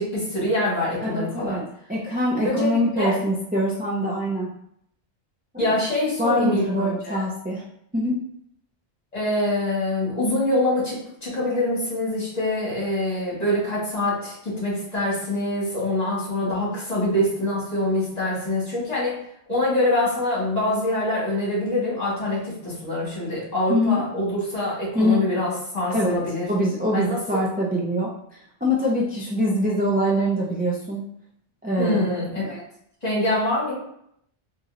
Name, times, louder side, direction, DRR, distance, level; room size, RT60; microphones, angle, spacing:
voice 1, 0.0-1.6 2.4-3.2 5.6-7.2 9.1-19.2 19.5-26.5 26.9-27.2 31.8-32.6 33.0-33.7, left 1 dB, 35° left, -7 dB, 1.7 m, -25 dB
voice 2, 1.0-1.6 1.9-4.5 5.5-5.7 6.2-7.6 7.9-8.2 23.7-24.0 24.9-25.2 25.9-26.2 26.5-28.1 28.6-31.0 31.6-32.0 32.3-32.5, equal, 15° right, -5 dB, 0.3 m, -23 dB
4.0 x 3.0 x 2.5 m, 0.71 s
omnidirectional pair, 1.2 m